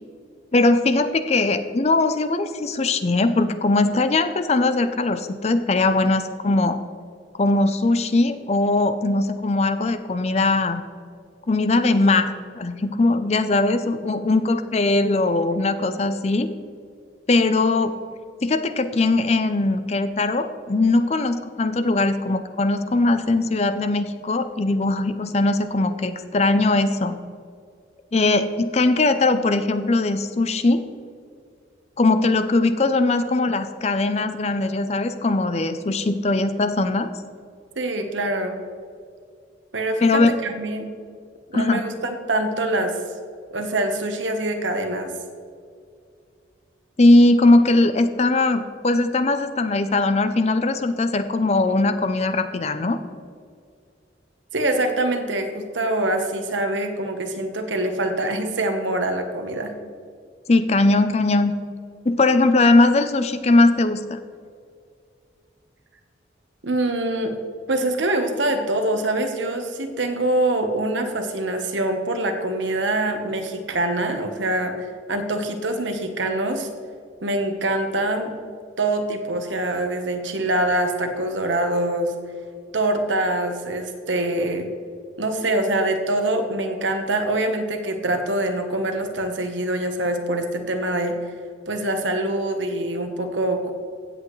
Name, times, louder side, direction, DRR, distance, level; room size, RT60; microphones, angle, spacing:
voice 1, 0.5-6.8 7.4-10.8 11.5-16.5 17.3-17.9 18.4-27.2 28.1-30.8 32.0-37.1 40.0-40.3 41.5-41.8 47.0-53.0 60.5-61.5 62.1-64.2, left 2 dB, 35° left, 10 dB, 0.5 m, -20 dB
voice 2, 37.8-38.6 39.7-40.9 41.5-43.0 43.5-45.1 54.5-59.7 66.6-67.3 67.7-76.7 77.2-78.3 78.8-82.1 82.7-84.7 85.2-91.2 91.7-93.7, right 1 dB, 85° right, 5 dB, 1.1 m, -24 dB
16.0 x 7.9 x 3.2 m, 2.2 s
head